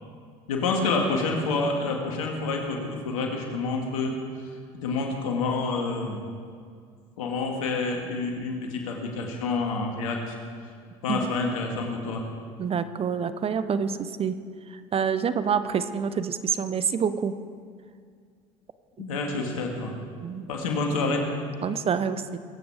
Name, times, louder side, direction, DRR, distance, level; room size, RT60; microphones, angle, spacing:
voice 1, 0.5-4.1 4.7-6.3 7.2-10.3 11.0-12.3 19.0-20.0 20.5-21.3, left 3 dB, 85° left, 1 dB, 2.3 m, -28 dB
voice 2, 12.6-14.3 14.9-17.4 20.2-20.5 21.6-22.4, right 7 dB, 35° right, 12 dB, 0.8 m, -27 dB
22.0 x 8.7 x 4.9 m, 2.1 s
hypercardioid pair, 75°, 17 cm